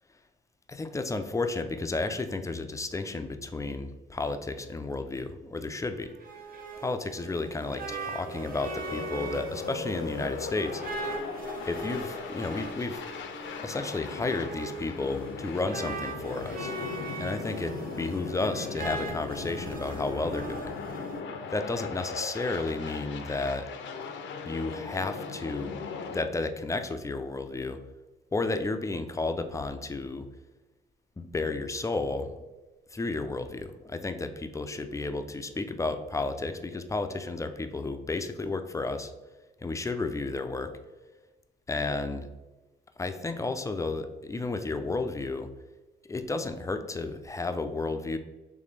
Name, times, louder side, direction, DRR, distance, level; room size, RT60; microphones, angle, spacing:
voice 1, 0.7-6.1 6.8-10.8 11.7-13.0 13.6-16.7 17.2-20.7 21.5-23.7 24.5-25.8 26.1-27.8 28.3-30.3 31.2-32.4 32.9-39.1 39.6-40.7 41.7-42.3 43.0-45.5 46.1-48.2, left 3 dB, 15° left, 8 dB, 0.4 m, -32 dB
sound 1, 5.9-21.2, right 2 dB, 50° right, 0.9 m, -40 dB
sound 2, 7.9-26.2, left 5 dB, 70° left, 0.5 m, -39 dB
4.1 x 3.1 x 3.2 m, 1.2 s
cardioid pair, 90°, 20 cm